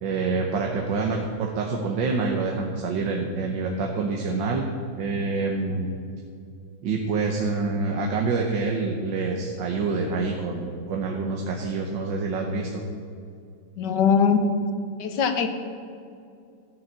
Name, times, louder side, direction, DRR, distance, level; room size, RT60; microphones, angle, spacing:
voice 1, 0.0-4.7 5.0-5.9 6.8-12.8, right 4 dB, 70° right, 1 dB, 1.6 m, -26 dB
voice 2, 13.8-14.5 15.0-15.5, left 6 dB, 65° left, 7 dB, 1.4 m, -21 dB
13.0 x 6.1 x 7.4 m, 2.4 s
omnidirectional pair, 2.1 m